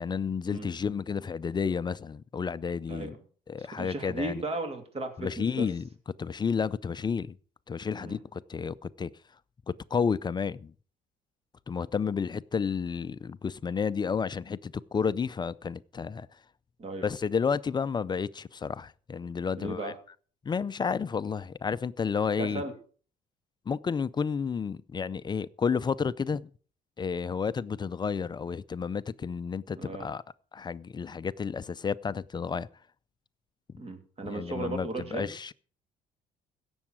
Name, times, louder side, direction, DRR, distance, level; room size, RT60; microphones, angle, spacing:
voice 1, 0.0-3.2 3.5-4.4 5.2-5.8 6.2-7.4 7.7-9.1 9.7-10.7 11.7-16.3 17.0-19.9 20.4-22.6 23.7-26.5 27.0-30.2 30.5-32.7 34.2-35.5, left 6 dB, 25° left, 0.5 m, -31 dB
voice 2, 3.6-5.7 8.0-8.2 16.8-17.1 19.6-19.9 22.4-22.7 29.7-30.1 33.8-35.3, right 2 dB, 35° right, 2.8 m, -36 dB
16.5 x 7.0 x 6.1 m
cardioid pair, 110°, 17 cm